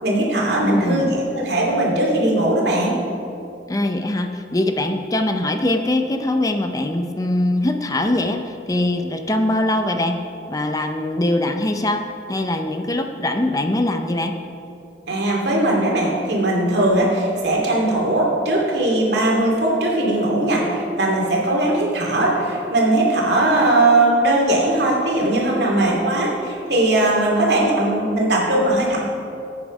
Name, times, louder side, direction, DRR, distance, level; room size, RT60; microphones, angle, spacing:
voice 1, 0.0-3.0 15.1-29.0, right 1 dB, 65° right, -1 dB, 2.6 m, -19 dB
voice 2, 0.6-1.1 3.7-10.2 10.5-12.0 12.3-14.3, left 1 dB, 20° left, 6 dB, 0.6 m, -22 dB
15.5 x 8.7 x 5.4 m, 2.7 s
head